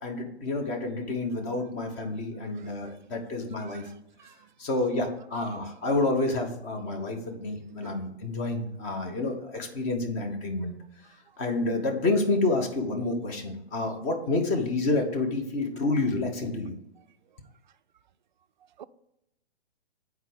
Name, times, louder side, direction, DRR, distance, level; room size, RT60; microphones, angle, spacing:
voice 1, 0.0-3.8 4.6-10.7 11.4-16.8, left 2 dB, 20° left, 3 dB, 1.0 m, -29 dB
voice 2, 2.5-2.9 3.6-3.9 4.2-4.3 5.3-5.6 7.1-8.1 18.8-18.9, right 9 dB, 45° right, 13 dB, 0.4 m, -50 dB
8.0 x 4.7 x 5.0 m, 0.83 s
figure-of-eight pair, 120°, 33 cm